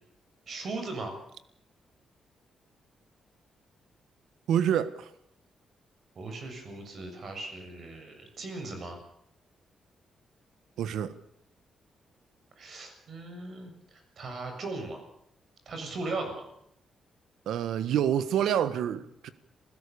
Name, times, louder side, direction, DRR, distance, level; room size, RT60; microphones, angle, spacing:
voice 1, 0.5-1.1 6.2-9.0 12.6-15.0 15.7-16.5, right 3 dB, 55° right, 7.0 m, -38 dB
voice 2, 4.5-5.1 10.8-11.1 17.5-19.3, right 9 dB, 90° right, 1.4 m, -27 dB
27.5 x 16.0 x 7.0 m
cardioid pair, 105°, 0 cm